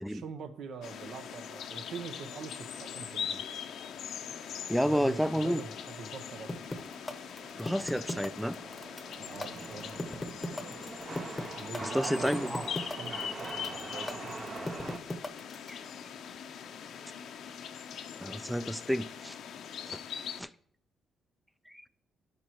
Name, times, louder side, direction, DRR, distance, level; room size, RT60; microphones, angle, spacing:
voice 1, 0.0-3.4 4.8-6.8 9.1-10.1 11.6-14.9, right 5 dB, 70° right, 0.8 m, -44 dB
Chatter / Subway metro underground, 0.7-15.0, right 3 dB, 35° right, 0.7 m, -45 dB
sound 1, 0.8-20.4, left 8 dB, 70° left, 0.6 m, -42 dB
voice 2, 4.7-5.6 7.6-8.6 11.9-12.7 15.7-15.8 18.2-19.3 19.9-20.0 20.4-20.5 21.7-21.8, equal, ahead, 0.3 m, -30 dB
sound 2, 6.5-15.7, left 2 dB, 20° left, 0.8 m, -37 dB
12.0 x 5.1 x 3.0 m
cardioid pair, 90°, 0 cm